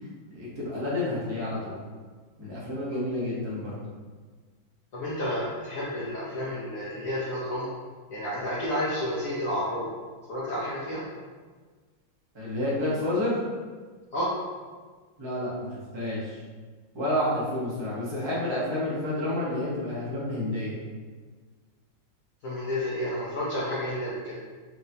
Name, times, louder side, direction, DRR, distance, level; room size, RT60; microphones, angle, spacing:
voice 1, 0.3-1.8 2.4-3.8 12.3-13.4 15.2-16.4 16.9-20.8, left 1 dB, 25° right, -7 dB, 0.6 m, -29 dB
voice 2, 4.9-7.7 8.1-9.9 10.3-11.0 14.1-14.3 22.4-24.4, left 1 dB, 65° left, -7 dB, 0.8 m, -30 dB
4.7 x 2.7 x 2.7 m, 1.5 s
omnidirectional pair, 2.2 m